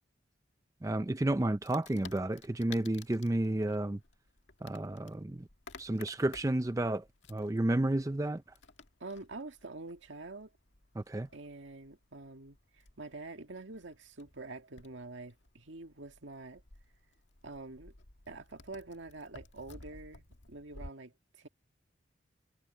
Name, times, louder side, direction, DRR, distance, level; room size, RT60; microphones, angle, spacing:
voice 1, 0.8-4.0 4.6-5.5 5.8-8.4 11.0-11.3, right 1 dB, 15° right, 0.4 m, -31 dB
Wood, 1.6-20.9, left 4 dB, 70° left, 1.7 m, -55 dB
voice 2, 9.0-10.5 11.3-16.6 17.4-17.9 18.3-21.5, right 3 dB, 75° right, 1.8 m, -46 dB
head